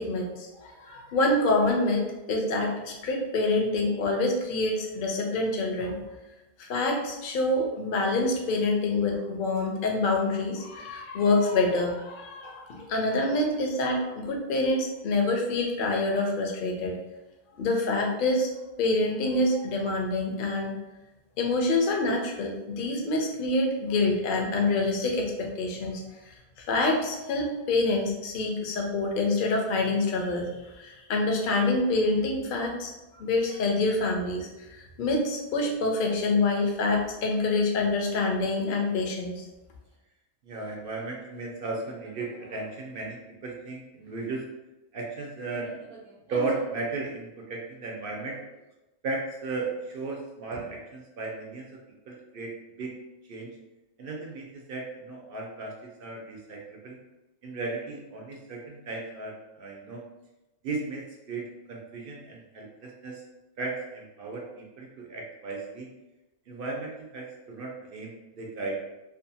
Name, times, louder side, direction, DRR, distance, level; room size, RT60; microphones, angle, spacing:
voice 1, 0.0-2.0 2.3-6.0 6.6-17.0 17.6-18.5 18.8-20.7 21.4-26.0 26.6-30.5 30.8-32.9 33.2-34.5 35.0-39.4, left 2 dB, 60° left, 1 dB, 0.6 m, -26 dB
voice 2, 40.4-44.4 44.9-48.4 49.0-51.8 52.1-52.9 53.3-53.5 54.0-57.0 57.4-60.0 60.6-63.2 63.6-65.9 66.5-68.8, right 3 dB, 60° right, -1 dB, 0.6 m, -36 dB
2.6 x 2.2 x 2.7 m, 1.0 s
omnidirectional pair, 1.2 m